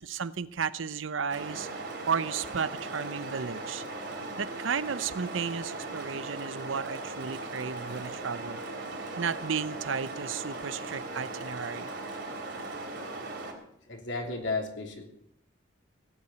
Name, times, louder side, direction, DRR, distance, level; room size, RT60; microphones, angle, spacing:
voice 1, 0.0-3.8 4.4-8.6 9.2-11.9, right 6 dB, 80° right, 16 dB, 0.7 m, -33 dB
sound 1, 1.3-13.5, right 2 dB, 55° right, 3.6 m, -38 dB
voice 2, 13.9-15.0, left 3 dB, 65° left, 3 dB, 3.1 m, -33 dB
17.5 x 8.7 x 7.9 m, 0.73 s
head